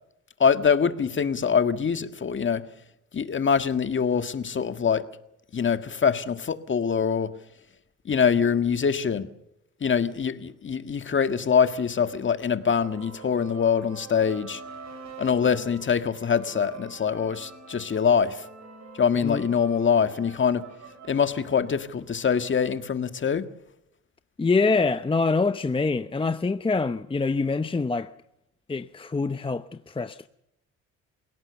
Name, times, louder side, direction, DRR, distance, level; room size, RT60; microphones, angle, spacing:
voice 1, 0.4-2.7 3.1-5.0 5.5-7.3 8.0-9.3 9.8-14.6 15.2-18.4 19.0-20.7 21.1-23.5, left 6 dB, 40° left, 1.8 m, -24 dB
sound 1, 11.1-22.9, right 5 dB, 65° right, 7.0 m, -46 dB
voice 2, 24.4-28.1 28.7-30.3, left 4 dB, 15° left, 0.8 m, -25 dB
27.5 x 17.5 x 7.0 m
cardioid pair, 90°, 30 cm